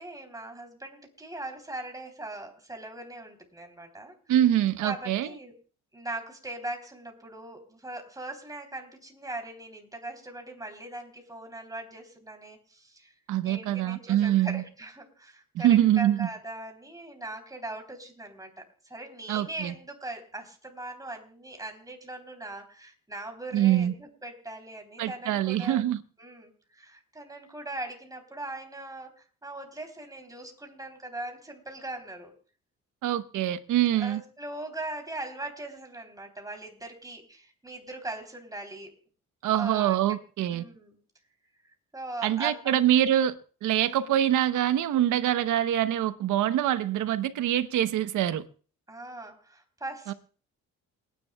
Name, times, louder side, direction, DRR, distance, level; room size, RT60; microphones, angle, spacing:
voice 1, 0.0-4.2 4.8-5.5 5.9-13.1 13.4-25.8 26.2-32.3 34.0-38.9 39.5-40.0 40.5-41.0 41.9-43.0 43.9-44.1 48.9-50.1, right 2 dB, 10° right, 3 dB, 3.4 m, -40 dB
voice 2, 4.3-5.3 13.3-14.6 15.5-16.3 19.3-19.7 23.5-23.9 25.0-26.0 33.0-34.2 39.4-40.6 42.2-43.3 43.6-48.4 50.1-50.2, right 12 dB, 85° right, 12 dB, 1.0 m, -24 dB
28.5 x 10.5 x 2.3 m, 0.40 s
cardioid pair, 90°, 30 cm